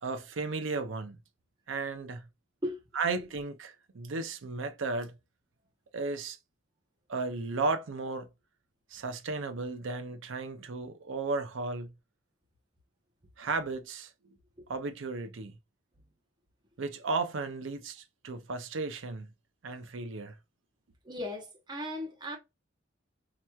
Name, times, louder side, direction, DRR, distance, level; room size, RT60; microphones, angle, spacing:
voice 1, 0.0-1.2 1.7-2.3 2.9-5.1 5.9-6.4 7.1-8.3 8.9-11.9 13.4-14.3 14.7-15.6 16.8-19.3 19.6-20.4, right 3 dB, 65° right, 0.5 m, -34 dB
voice 2, 21.0-22.4, left 1 dB, 20° right, 0.9 m, -37 dB
4.3 x 2.9 x 2.3 m
head